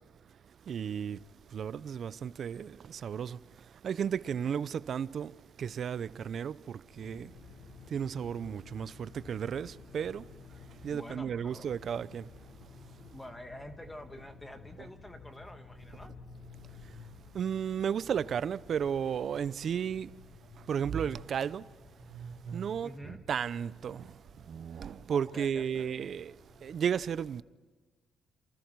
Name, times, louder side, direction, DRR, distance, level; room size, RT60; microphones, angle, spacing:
voice 1, 0.7-7.4 7.9-10.3 10.8-12.3 16.8-16.9 17.3-20.1 20.6-21.7 22.1-27.4, right 8 dB, 55° right, 0.6 m, -34 dB
sound 1, 7.0-26.8, left 4 dB, 65° left, 6.9 m, -53 dB
voice 2, 10.9-11.7 13.1-16.1 22.8-23.2 25.1-26.0, left 1 dB, 10° left, 1.6 m, -47 dB
28.5 x 27.5 x 4.7 m
cardioid pair, 90°, 0 cm